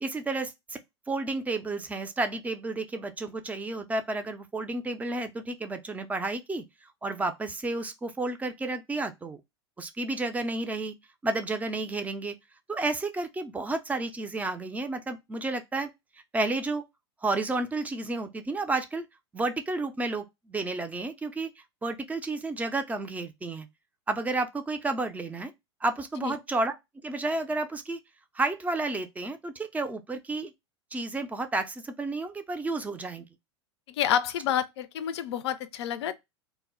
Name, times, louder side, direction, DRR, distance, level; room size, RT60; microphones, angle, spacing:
voice 1, 0.0-0.8 1.1-6.6 7.0-9.4 9.8-10.9 11.2-12.4 12.7-15.9 16.3-16.8 17.2-19.1 19.3-21.5 21.8-23.7 24.1-25.5 25.8-26.7 27.0-28.0 28.3-30.5 30.9-33.3, right 2 dB, 10° right, 0.3 m, -31 dB
voice 2, 33.9-36.1, left 10 dB, 70° left, 0.4 m, -29 dB
2.1 x 2.0 x 3.5 m
hypercardioid pair, 100°, 14 cm